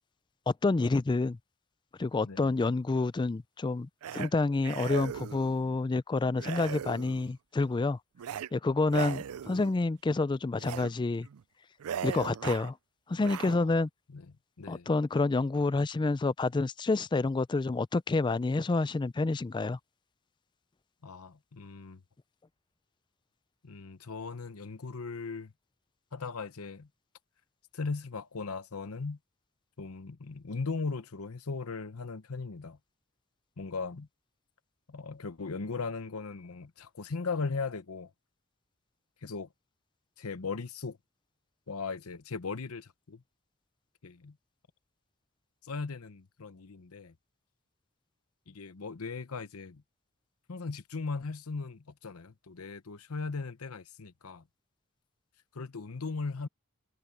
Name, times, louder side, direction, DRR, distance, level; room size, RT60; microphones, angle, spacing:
voice 1, 0.5-1.4 2.0-8.0 8.5-11.3 12.0-12.8 13.1-13.9 14.7-19.8, left 3 dB, 20° left, 0.3 m, -28 dB
sound 1, 4.0-4.3 4.6-5.5 6.4-7.3 8.2-8.5 8.9-9.8 10.6-10.9 11.3-11.4 11.8-12.7 13.2-13.6, right 8 dB, 80° right, 0.4 m, -38 dB
voice 2, 13.4-13.8 14.1-14.3 14.6-14.9 21.0-22.0 23.6-25.5 26.1-26.9 27.7-29.2 29.8-32.8 33.6-34.1 34.9-38.1 39.2-39.5 40.2-41.0 41.7-43.2 44.0-44.4 45.6-47.1 48.5-49.8 50.5-54.4 55.5-56.5, left 4 dB, 80° left, 0.9 m, -38 dB
head